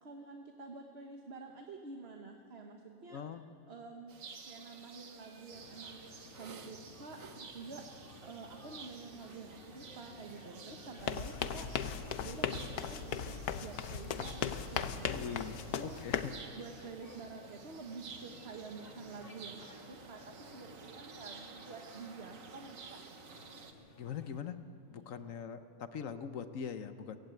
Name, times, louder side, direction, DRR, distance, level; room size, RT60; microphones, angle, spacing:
voice 1, 0.0-3.2 3.7-4.2 4.4-7.8 8.2-11.7 12.2-13.3 13.6-16.0 16.6-23.0, right 4 dB, 45° right, 3 dB, 1.5 m, -49 dB
voice 2, 3.1-3.4 15.1-16.3 24.0-24.6 24.9-27.2, left 7 dB, 65° left, 10 dB, 1.2 m, -42 dB
sound 1, 4.1-23.7, right 5 dB, 60° right, 1.6 m, -52 dB
sound 2, 5.5-24.4, left 2 dB, 40° left, 1.9 m, -56 dB
sound 3, 11.0-16.4, left 8 dB, 90° left, 1.3 m, -37 dB
18.5 x 15.5 x 8.9 m, 2.7 s
omnidirectional pair, 1.6 m